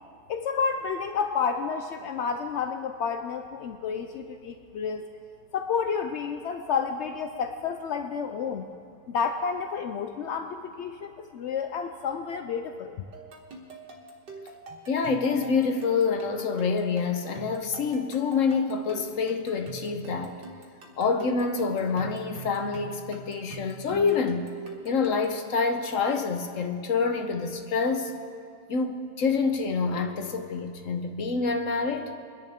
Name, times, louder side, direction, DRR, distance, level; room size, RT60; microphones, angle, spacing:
voice 1, 0.3-5.1 5.5-8.7 9.1-13.0, left 6 dB, 80° left, 6 dB, 0.6 m, -30 dB
sound 1, 13.1-25.4, right 3 dB, 85° right, 2.2 m, -44 dB
voice 2, 14.9-20.3 21.0-24.5 24.8-28.1 28.7-32.1, left 5 dB, 55° left, 5 dB, 1.1 m, -27 dB
23.0 x 10.5 x 3.6 m, 2.3 s
omnidirectional pair, 1.8 m